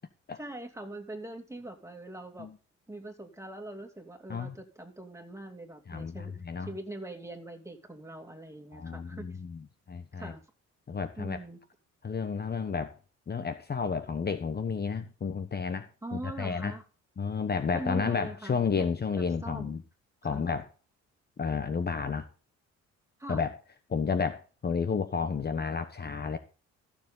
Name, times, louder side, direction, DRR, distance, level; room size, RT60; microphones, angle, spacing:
voice 1, 0.4-2.5 2.9-9.4 10.1-10.4 11.2-11.6 16.0-16.8 17.7-18.9 19.2-19.8 20.2-20.5 23.2-23.4, right 1 dB, 10° right, 2.8 m, -42 dB
voice 2, 5.9-6.7 8.7-9.6 9.9-10.3 10.9-11.4 12.0-12.9 13.3-16.7 17.2-19.8 20.2-20.7 21.4-22.3 23.3-23.5 23.9-26.4, left 5 dB, 35° left, 1.1 m, -31 dB
14.5 x 7.2 x 3.9 m
cardioid pair, 90°, 30 cm